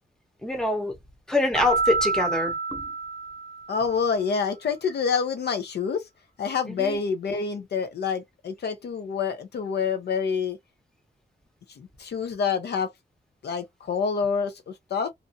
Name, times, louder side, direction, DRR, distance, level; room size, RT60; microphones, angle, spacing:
voice 1, 0.4-0.9 1.3-2.9 6.7-7.0, left 2 dB, 5° left, 0.8 m, -25 dB
Keyboard (musical), 1.5-3.9, right 4 dB, 65° right, 0.5 m, -28 dB
voice 2, 3.7-6.0 6.4-10.6 11.8-12.9 13.4-15.1, left 6 dB, 70° left, 0.6 m, -27 dB
2.5 x 2.3 x 2.6 m
wide cardioid pair, 165°, 18 cm